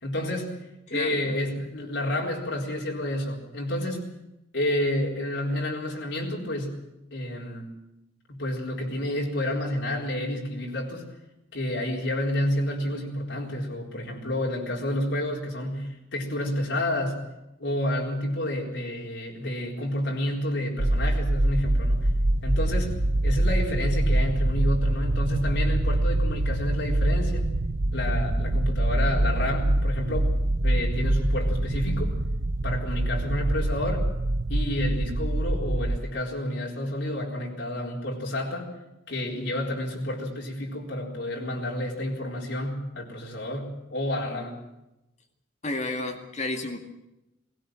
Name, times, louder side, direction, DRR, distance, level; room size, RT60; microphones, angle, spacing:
voice 1, 0.0-4.1 4.5-6.8 7.1-7.7 8.3-11.1 11.5-17.3 17.6-22.1 22.4-27.5 27.9-30.4 30.6-32.2 32.6-34.1 34.5-38.7 39.1-44.6, left 1 dB, 65° left, -1 dB, 4.2 m, -30 dB
voice 2, 0.9-1.4 45.6-46.8, left 2 dB, 40° left, 4 dB, 2.2 m, -31 dB
sound 1, 20.8-36.0, right 1 dB, 85° right, 1.0 m, -25 dB
21.5 x 17.0 x 7.7 m, 0.92 s
head